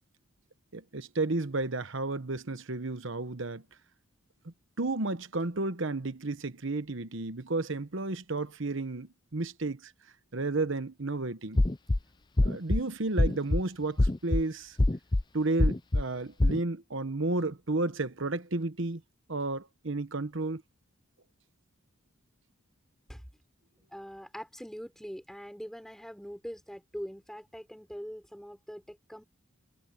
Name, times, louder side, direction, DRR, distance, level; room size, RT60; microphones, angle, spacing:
voice 1, 0.7-3.6 4.8-9.9 10.3-11.6 12.4-14.8 15.3-19.0 19.3-20.6, right 2 dB, 60° right, 1.1 m, -32 dB
sound 1, 11.6-12.0 12.4-12.8 13.2-13.6 14.0-14.4 14.8-15.2 15.6-16.0 16.4-16.6, left 2 dB, 20° left, 0.5 m, -23 dB
voice 2, 23.9-29.2, equal, ahead, 5.7 m, -43 dB
head